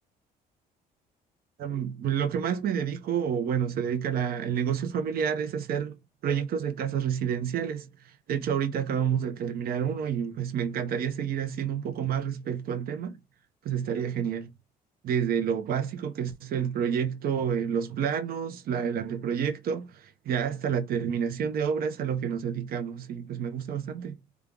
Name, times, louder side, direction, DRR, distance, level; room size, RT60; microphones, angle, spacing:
voice 1, 1.6-6.0 6.2-13.2 13.6-14.5 15.0-24.2, right 8 dB, 60° right, 0.8 m, -29 dB
3.4 x 2.3 x 3.7 m
cardioid pair, 110°, 17 cm